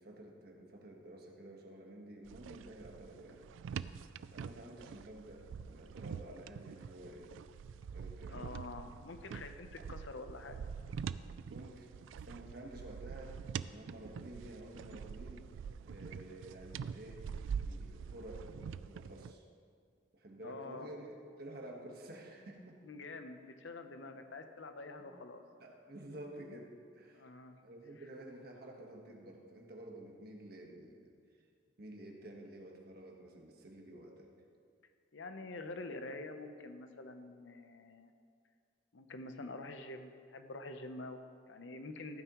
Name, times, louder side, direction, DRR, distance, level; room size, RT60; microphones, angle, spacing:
voice 1, 0.0-3.4 4.3-7.3 7.9-8.5 11.5-11.9 12.1-15.5 15.8-17.3 17.6-19.4 20.1-22.8 25.0-25.1 25.6-27.3 27.6-31.2 31.8-34.3, right 1 dB, 55° right, 1 dB, 1.4 m, -51 dB
sound 1, 2.2-19.3, right 6 dB, 85° right, 0.3 m, -45 dB
voice 2, 8.3-10.6 20.4-20.9 22.8-25.4 27.1-27.6 35.1-38.1 38.9-42.2, left 2 dB, 75° left, 7 dB, 0.8 m, -47 dB
14.5 x 9.3 x 3.1 m, 2.2 s
head